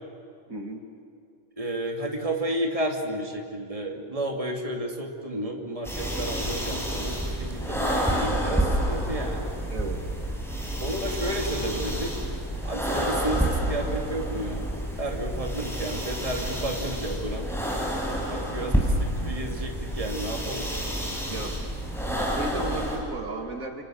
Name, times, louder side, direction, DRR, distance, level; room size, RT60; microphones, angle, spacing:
voice 1, 0.5-0.9 9.7-10.0 21.3-21.7 22.1-23.8, right 2 dB, 65° right, 3 dB, 2.6 m, -35 dB
voice 2, 1.6-9.6 10.8-12.1 12.6-14.7 15.0-17.5 18.3-20.7, right 1 dB, 20° right, 2 dB, 2.8 m, -32 dB
sound 1, 5.8-23.0, equal, ahead, 5.4 m, -29 dB
29.0 x 28.0 x 6.5 m, 2.4 s
omnidirectional pair, 1.6 m